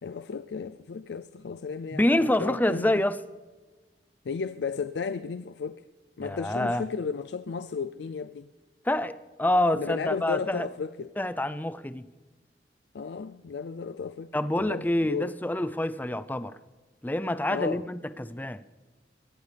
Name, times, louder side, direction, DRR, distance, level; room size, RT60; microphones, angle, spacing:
voice 1, 0.0-3.0 4.2-5.8 6.2-8.5 9.7-11.1 12.9-14.3 14.6-15.3 17.5-17.8, left 5 dB, 70° left, 0.4 m, -34 dB
voice 2, 1.9-3.2 6.2-6.8 8.9-10.7 11.2-12.1 14.3-16.5 17.0-18.6, left 1 dB, 10° left, 0.5 m, -27 dB
22.5 x 18.0 x 3.4 m
head